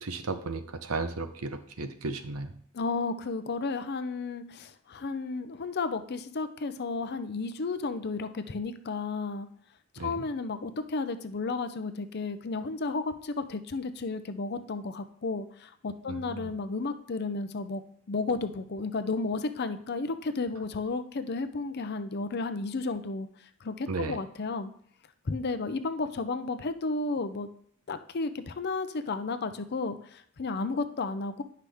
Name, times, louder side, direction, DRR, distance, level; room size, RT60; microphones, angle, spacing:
voice 1, 0.0-2.5 10.0-10.2 16.1-16.5 23.9-24.2, right 3 dB, 80° right, 9 dB, 0.8 m, -34 dB
voice 2, 2.7-9.5 9.9-17.8 18.1-23.3 23.6-24.7 25.3-27.5 27.9-31.4, left 3 dB, 50° left, 10 dB, 0.6 m, -33 dB
10.0 x 5.8 x 3.5 m, 0.62 s
head